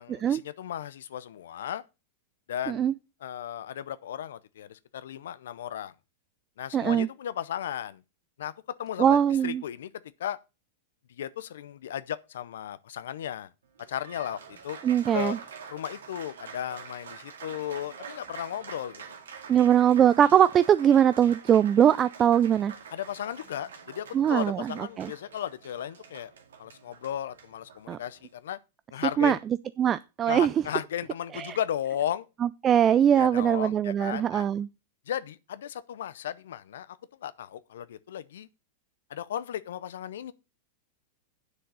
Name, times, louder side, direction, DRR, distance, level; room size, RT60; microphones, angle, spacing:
voice 1, 0.0-1.8 2.5-2.9 3.2-5.9 6.6-8.0 8.4-8.5 8.8-9.9 10.2-10.4 11.2-13.5 13.9-14.8 15.1-15.4 15.7-19.0 22.9-26.3 26.6-28.6 28.9-29.4 30.3-32.3 33.1-34.5 35.1-38.5 39.1-40.3, left 10 dB, 75° left, 0.6 m, -35 dB
voice 2, 6.7-7.1 9.0-9.6 14.8-15.4 19.5-22.7 24.1-25.1 27.9-28.0 29.2-29.4 29.8-30.5 31.3-31.6 32.4-34.7, right 9 dB, 30° right, 0.4 m, -22 dB
Applause, 13.6-28.3, right 6 dB, 85° right, 2.2 m, -46 dB
7.6 x 6.4 x 6.8 m
hypercardioid pair, 110°, 0 cm